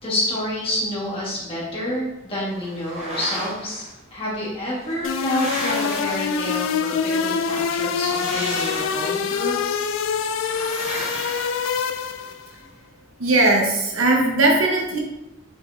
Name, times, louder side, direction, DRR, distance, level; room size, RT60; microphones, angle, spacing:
voice 1, 0.0-3.8 4.1-9.6, left 1 dB, 25° left, -6 dB, 1.6 m, -28 dB
sound 1, 2.6-3.9 4.7-6.9 7.9-9.4 10.4-12.3, right 1 dB, 30° right, 1.0 m, -34 dB
sound 2, 5.0-12.5, left 6 dB, 70° left, 0.3 m, -25 dB
voice 2, 13.2-15.0, right 2 dB, 90° right, -1 dB, 1.1 m, -18 dB
5.1 x 3.9 x 2.6 m, 0.95 s
head